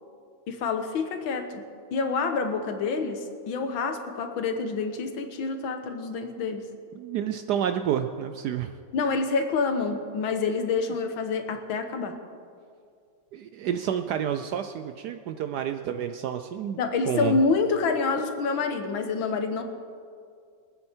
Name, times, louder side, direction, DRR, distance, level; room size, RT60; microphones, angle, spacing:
voice 1, 0.5-1.6 1.9-6.7 8.9-12.2 16.8-19.6, left 4 dB, 85° left, 6 dB, 1.9 m, -27 dB
voice 2, 6.9-8.7 13.3-16.8 17.1-17.4, right 9 dB, 75° right, 8 dB, 1.0 m, -29 dB
23.5 x 8.8 x 4.4 m, 2.3 s
omnidirectional pair, 2.1 m